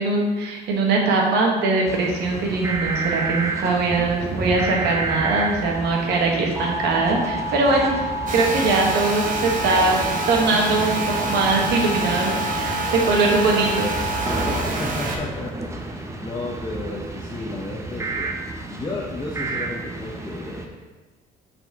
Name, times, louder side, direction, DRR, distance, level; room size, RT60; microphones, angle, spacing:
voice 1, 0.0-7.9 8.3-13.9 15.1-15.2, right 3 dB, 75° right, 0 dB, 1.3 m, -21 dB
sound 1, 1.9-20.6, right 2 dB, 15° right, 0.7 m, -29 dB
sound 2, 8.3-15.2, right 3 dB, 50° right, 0.9 m, -29 dB
voice 2, 14.8-15.6 16.2-18.3 18.7-20.9, left 2 dB, 20° left, -2 dB, 0.8 m, -33 dB
6.9 x 4.3 x 3.5 m, 1.2 s
cardioid pair, 110°, 17 cm